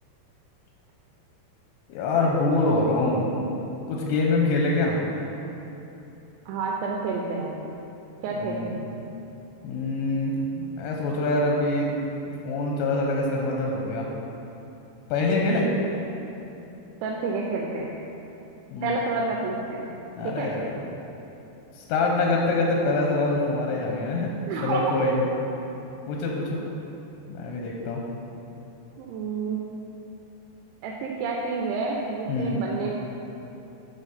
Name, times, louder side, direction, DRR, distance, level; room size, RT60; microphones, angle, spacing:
voice 1, 1.9-3.4 3.9-5.0 8.4-8.8 9.6-11.9 12.5-14.1 15.1-15.7 18.7-19.0 20.2-20.7 21.8-24.3 24.6-25.3 26.1-26.6 27.3-28.0 32.3-32.6, left 2 dB, 80° left, -1 dB, 2.6 m, -25 dB
voice 2, 6.5-7.6 8.2-8.6 17.0-17.9 18.8-19.9 20.2-20.5 24.5-24.8 29.0-29.6 30.8-32.9, right 4 dB, 90° right, -2 dB, 3.0 m, -29 dB
10.0 x 3.9 x 5.7 m, 3.0 s
omnidirectional pair, 5.2 m